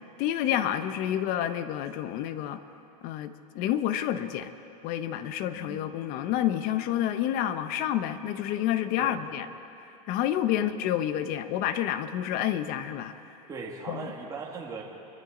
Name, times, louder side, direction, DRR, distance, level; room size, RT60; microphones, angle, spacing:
voice 1, 0.2-2.6 3.0-4.5 4.8-9.5 9.8-13.1 13.9-14.1, left 11 dB, 50° left, 11 dB, 0.9 m, -29 dB
voice 2, 1.1-1.4 5.5-5.9 9.0-9.2 10.5-10.7 13.5-14.8, right 4 dB, 20° right, -3 dB, 2.1 m, -39 dB
25.5 x 13.5 x 3.9 m, 2.9 s
supercardioid pair, 125°, 19 cm